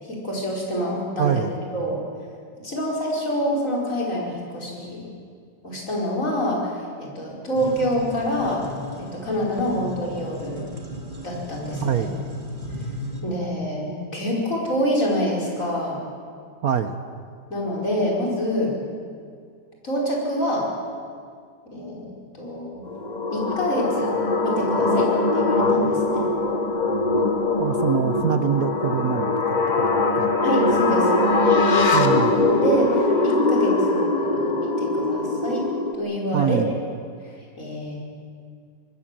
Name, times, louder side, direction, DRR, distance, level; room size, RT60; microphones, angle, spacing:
voice 1, 0.0-1.4 1.7-2.0 2.6-5.1 5.6-8.7 9.0-10.6 11.2-12.1 13.2-16.0 17.5-18.8 19.8-20.7 21.7-22.8 23.3-24.1 24.4-26.3 30.4-31.1 31.4-32.0 32.5-35.6 35.9-36.6 37.2-38.0, equal, 45° left, -2 dB, 5.6 m, -26 dB
voice 2, 1.2-1.5 11.8-12.1 16.6-17.0 27.6-29.3 30.1-30.3 31.9-32.3 36.3-36.7, right 8 dB, 60° right, 9 dB, 1.3 m, -23 dB
sound 1, 7.5-13.2, left 1 dB, 20° right, 2.6 m, -35 dB
sound 2, 22.9-35.9, left 2 dB, 25° left, 1.5 m, -21 dB
25.5 x 19.5 x 7.6 m, 2.2 s
omnidirectional pair, 1.9 m